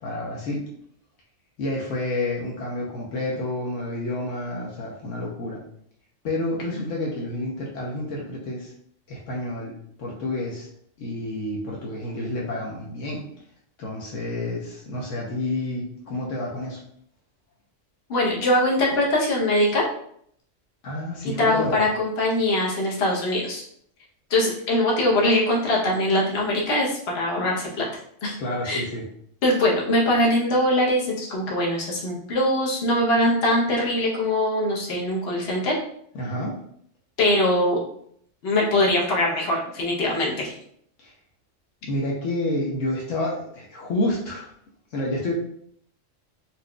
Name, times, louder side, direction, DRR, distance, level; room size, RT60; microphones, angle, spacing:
voice 1, 0.0-0.6 1.6-5.6 6.2-8.7 9.1-10.7 11.0-13.2 13.8-16.8 20.8-21.8 28.4-29.0 36.1-36.5 41.0-41.1 41.8-44.5 44.9-45.3, left 1 dB, 75° left, -3 dB, 1.1 m, -29 dB
voice 2, 18.1-19.8 21.4-23.6 24.3-27.8 28.2-28.3 28.6-28.8 29.4-35.7 37.2-37.8 38.4-40.5, left 1 dB, 55° left, -3 dB, 1.1 m, -22 dB
4.2 x 2.6 x 2.2 m, 0.66 s
omnidirectional pair, 1.3 m